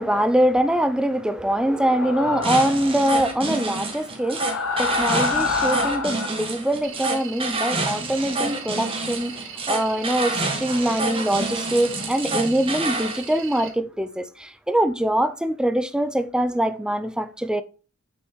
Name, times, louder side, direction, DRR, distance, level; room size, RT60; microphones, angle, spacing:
voice 1, 0.0-17.6, right 1 dB, 5° right, 0.5 m, -23 dB
sound 1, 1.8-2.9 4.2-6.4, left 4 dB, 70° left, 1.1 m, -26 dB
sound 2, 2.4-13.2, right 2 dB, 25° right, 1.6 m, -28 dB
sound 3, 6.8-13.7, right 7 dB, 65° right, 1.9 m, -39 dB
6.3 x 6.3 x 4.6 m
head